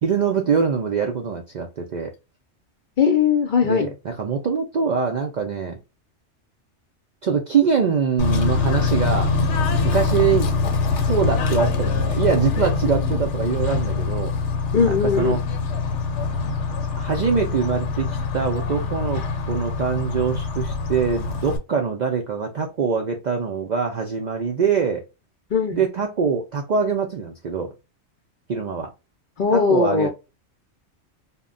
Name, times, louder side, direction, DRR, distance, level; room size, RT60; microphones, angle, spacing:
voice 1, 0.0-2.1 3.6-5.8 7.2-9.3 9.8-10.5 11.0-14.5 14.8-15.4 17.0-25.0 25.7-27.7 28.5-28.9 29.5-30.1, right 6 dB, 60° right, 0.4 m, -23 dB
voice 2, 3.0-3.9 14.7-15.4 25.5-25.8 29.4-30.1, left 6 dB, 55° left, 0.6 m, -19 dB
Bird / Train, 8.2-21.6, left 4 dB, 75° left, 0.9 m, -24 dB
2.1 x 2.1 x 3.6 m
omnidirectional pair, 1.2 m